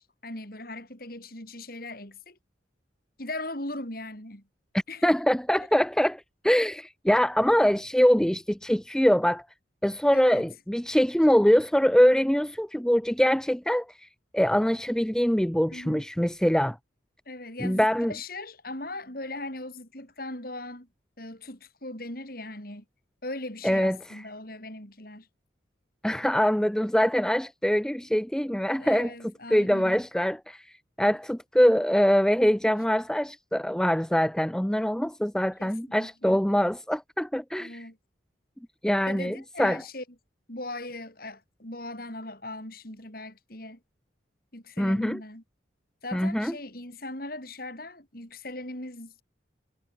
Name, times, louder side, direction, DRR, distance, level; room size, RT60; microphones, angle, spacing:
voice 1, 0.0-2.4 3.2-4.4 4.9-5.1 10.1-10.5 15.7-16.0 17.3-20.9 21.2-22.8 23.2-25.3 28.8-30.0 35.6-36.4 37.6-38.0 39.1-40.0 40.5-43.8 44.5-45.4 46.0-49.2, left 2 dB, 50° left, 5.9 m, -39 dB
voice 2, 5.0-9.4 9.8-14.1 14.3-16.8 17.6-18.1 23.6-24.0 26.0-29.1 29.5-30.6 31.0-37.8 38.8-39.8 44.8-45.2 46.1-46.5, equal, 5° left, 0.5 m, -23 dB
head